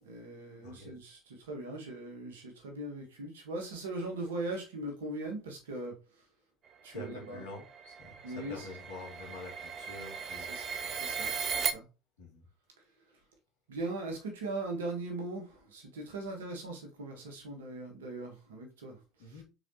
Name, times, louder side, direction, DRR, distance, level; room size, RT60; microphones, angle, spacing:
voice 1, 0.0-6.0 6.8-7.4 8.2-8.7 10.5-10.7 11.0-11.8 13.7-19.0 19.3-19.4, right 2 dB, 75° right, 1.4 m, -40 dB
voice 2, 0.6-0.9 6.9-10.5 12.2-12.5 19.2-19.4, left 2 dB, 65° left, 2.1 m, -46 dB
sound 1, 7.0-11.7, right 6 dB, 40° right, 0.5 m, -37 dB
4.8 x 4.0 x 2.7 m
figure-of-eight pair, 65°, 0 cm